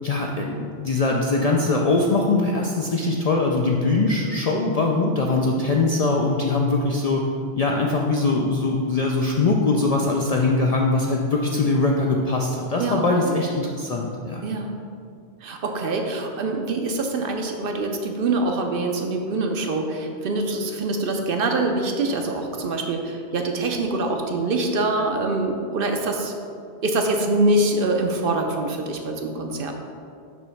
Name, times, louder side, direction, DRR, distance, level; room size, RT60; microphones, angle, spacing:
voice 1, 0.0-7.2 7.6-14.4, left 3 dB, 55° left, -1 dB, 0.4 m, -22 dB
voice 2, 12.8-13.3 14.4-14.8 15.4-26.3 26.8-29.7, right 2 dB, 60° right, 3 dB, 0.7 m, -24 dB
6.2 x 3.0 x 5.6 m, 2.3 s
omnidirectional pair, 1.1 m